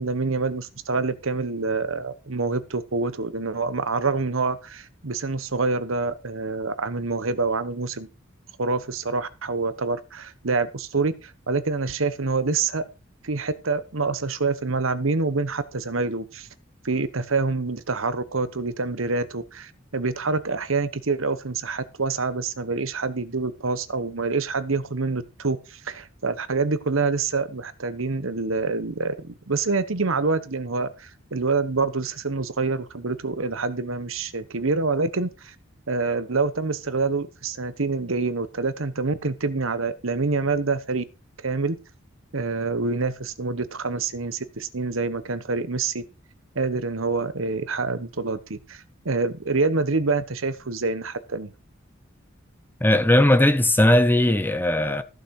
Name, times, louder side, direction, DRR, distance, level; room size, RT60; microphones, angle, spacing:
voice 1, 0.0-8.1 8.6-12.8 13.2-16.5 16.8-35.5 35.9-41.0 41.4-41.8 42.3-46.0 46.5-51.5, right 3 dB, 85° right, 1.1 m, -26 dB
voice 2, 52.8-55.0, left 1 dB, 10° left, 1.0 m, -18 dB
14.5 x 6.7 x 4.8 m
head